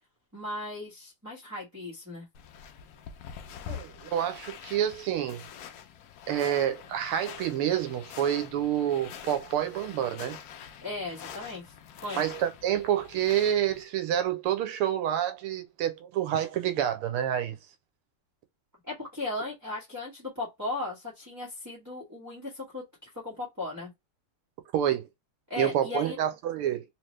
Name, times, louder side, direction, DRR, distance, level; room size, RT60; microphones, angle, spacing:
voice 1, 0.3-2.3 10.8-11.7 12.0-12.2 18.9-23.9 25.5-26.2, left 2 dB, 10° right, 1.3 m, -36 dB
sound 1, 2.3-13.8, left 9 dB, 85° left, 0.8 m, -45 dB
voice 2, 3.7-5.4 6.3-10.4 12.1-17.5 24.7-25.1 25.6-26.8, right 10 dB, 90° right, 1.6 m, -28 dB
3.7 x 2.9 x 3.2 m
omnidirectional pair, 2.4 m